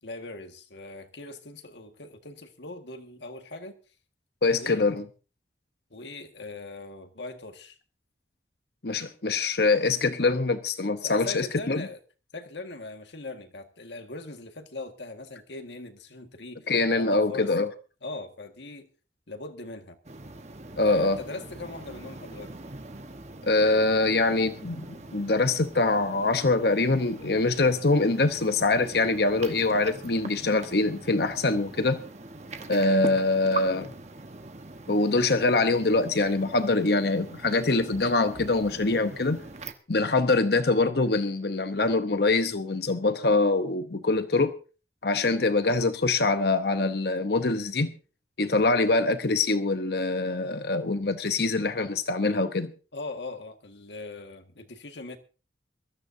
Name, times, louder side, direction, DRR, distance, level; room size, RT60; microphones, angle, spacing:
voice 1, 0.0-3.8 4.5-4.9 5.9-7.8 11.0-12.0 12.3-17.5 18.0-18.9 19.3-20.0 20.8-22.5 52.9-55.2, left 2 dB, 85° left, 1.7 m, -40 dB
voice 2, 4.4-5.1 8.8-11.9 16.7-17.7 20.8-21.2 23.4-32.0 32.7-33.9 34.9-39.4 39.9-44.6 45.0-47.9 48.4-52.7, left 3 dB, 65° left, 0.9 m, -24 dB
sound 1, 20.0-39.7, right 2 dB, 40° right, 1.2 m, -42 dB
22.5 x 13.5 x 2.7 m
head